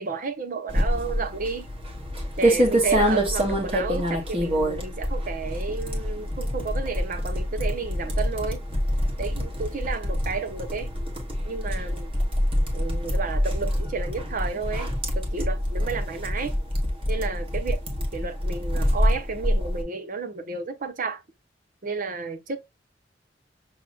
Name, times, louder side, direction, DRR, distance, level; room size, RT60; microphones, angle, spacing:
voice 1, 0.0-1.7 2.4-8.6 9.2-10.9 11.4-12.1 12.7-16.5 17.1-17.8 18.1-21.2 21.8-22.6, right 4 dB, 50° right, 0.7 m, -32 dB
sound 1, 0.7-19.8, equal, 30° right, 1.3 m, -26 dB
6.3 x 3.0 x 2.3 m
head